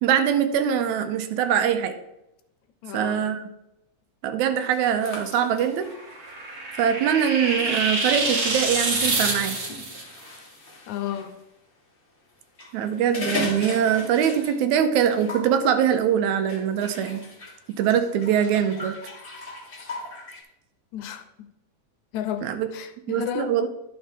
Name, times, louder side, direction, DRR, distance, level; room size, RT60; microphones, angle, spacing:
voice 1, 0.0-1.9 2.9-3.4 4.2-5.9 6.8-9.6 12.7-17.2 17.8-19.0 22.4-22.7 23.1-23.7, right 8 dB, 80° right, 8 dB, 2.0 m, -23 dB
voice 2, 2.8-3.2 10.9-11.3 20.9-21.2 22.1-23.5, left 10 dB, 80° left, 8 dB, 2.0 m, -32 dB
sound 1, 4.7-11.3 12.4-14.7 15.0-15.5 16.5-20.4, left 2 dB, 60° left, 0.5 m, -38 dB
sound 2, 5.9-10.0, right 2 dB, 50° right, 0.9 m, -26 dB
11.0 x 5.9 x 3.4 m, 0.87 s
omnidirectional pair, 3.4 m